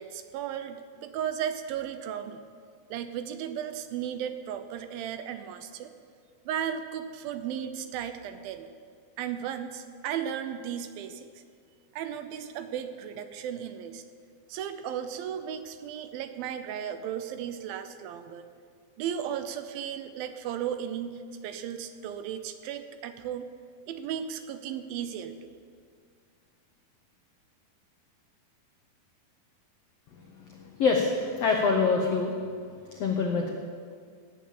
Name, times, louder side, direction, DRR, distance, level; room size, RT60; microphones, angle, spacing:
voice 1, 0.0-2.4 2.9-5.9 6.5-8.7 9.2-11.3 11.9-14.0 14.5-18.5 19.0-23.5 23.9-25.5, right 9 dB, 75° right, 9 dB, 2.4 m, -35 dB
voice 2, 30.5-32.3 32.9-33.5, left 4 dB, 85° left, 2 dB, 1.4 m, -25 dB
17.0 x 7.5 x 8.6 m, 2.1 s
omnidirectional pair, 4.5 m